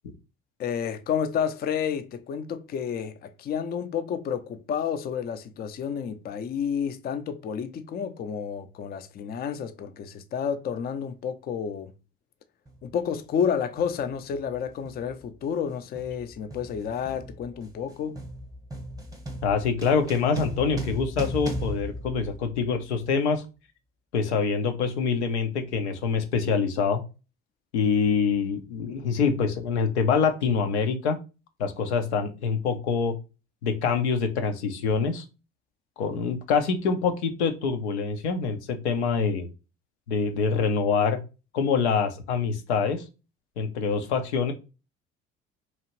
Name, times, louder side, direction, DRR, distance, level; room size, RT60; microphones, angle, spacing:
voice 1, 0.6-11.9 12.8-18.2, left 7 dB, 30° left, 0.4 m, -30 dB
sound 1, 12.7-12.8 13.8-14.0 14.3-22.8, right 1 dB, 10° right, 0.8 m, -37 dB
voice 2, 19.4-23.4 24.1-27.0 27.7-31.2 31.6-33.1 33.6-35.2 36.0-39.5 40.1-41.2 41.5-43.0 43.6-44.5, left 5 dB, 85° left, 0.6 m, -25 dB
2.8 x 2.4 x 2.9 m
hypercardioid pair, 65°, 33 cm